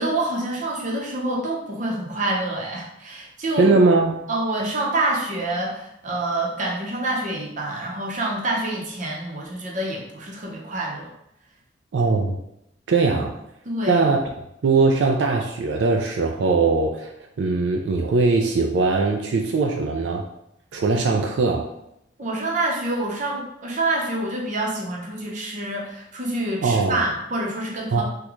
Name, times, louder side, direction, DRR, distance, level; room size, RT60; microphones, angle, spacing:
voice 1, 0.0-3.7 4.3-11.1 13.1-13.2 13.6-14.0 22.2-28.0, right 2 dB, 45° right, -2 dB, 0.7 m, -27 dB
voice 2, 3.6-4.2 11.9-12.4 12.9-13.4 13.9-14.2 14.6-17.1 17.4-20.3 20.7-21.6 26.6-27.1 27.9-28.0, right 3 dB, 85° right, 1 dB, 0.4 m, -20 dB
3.7 x 2.2 x 3.0 m, 0.81 s
head